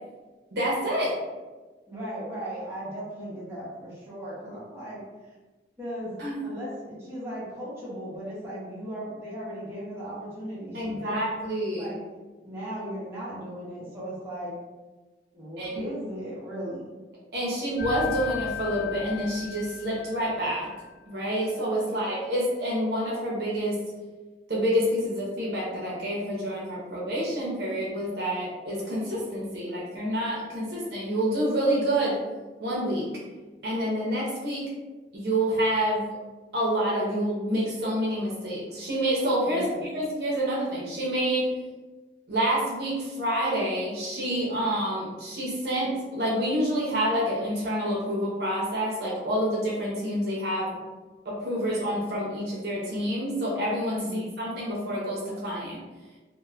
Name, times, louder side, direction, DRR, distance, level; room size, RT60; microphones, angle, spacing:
voice 1, 0.5-1.2 6.2-6.3 10.7-12.0 15.6-15.8 17.3-20.7 21.1-23.8 24.5-32.2 32.6-33.1 33.6-34.7 35.1-36.1 36.5-39.6 39.9-41.5 42.3-50.8 51.3-55.8, equal, 60° right, -5 dB, 0.6 m, -28 dB
voice 2, 1.9-5.0 5.8-11.1 11.8-12.0 12.4-14.5 15.3-16.9 21.8-22.0 39.4-39.8 54.0-54.3, right 1 dB, 15° right, -9 dB, 0.9 m, -37 dB
sound 1, 17.8-20.7, left 7 dB, 50° left, 0.8 m, -36 dB
2.9 x 2.0 x 2.3 m, 1.2 s
head